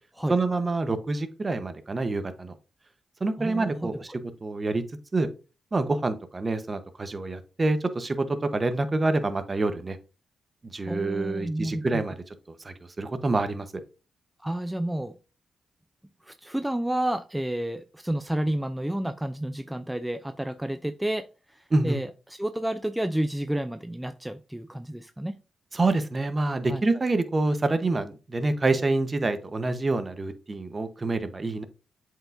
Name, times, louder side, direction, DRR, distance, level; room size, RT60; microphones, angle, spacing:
voice 1, 0.3-2.5 3.2-4.1 4.4-4.8 5.1-5.3 5.7-10.0 10.6-12.1 12.6-13.8 21.7-22.0 25.7-31.6, right 2 dB, 35° right, 10 dB, 1.0 m, -27 dB
voice 2, 3.4-3.9 10.9-12.0 14.4-15.1 16.2-25.4 26.7-26.8, right 1 dB, 5° right, 9 dB, 0.5 m, -30 dB
7.6 x 4.8 x 2.6 m, 0.32 s
cardioid pair, 60°, 0 cm